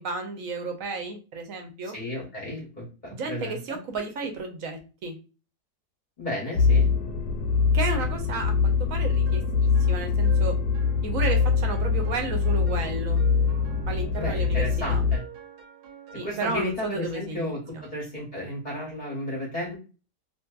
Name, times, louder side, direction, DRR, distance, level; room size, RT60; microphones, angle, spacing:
voice 1, 0.0-2.0 3.1-5.2 7.7-9.4 9.9-10.6 11.0-13.2 13.9-15.0 16.2-17.5, right 3 dB, 70° right, 4 dB, 0.9 m, -32 dB
voice 2, 1.8-3.8 6.2-6.9 14.2-15.2 16.2-19.8, left 1 dB, 40° left, -4 dB, 0.7 m, -33 dB
sound 1, 6.6-15.2, left 5 dB, 80° left, 1.1 m, -23 dB
sound 2, 9.3-16.9, right 9 dB, 85° right, 1.1 m, -46 dB
2.7 x 2.5 x 2.2 m, 0.33 s
omnidirectional pair, 1.7 m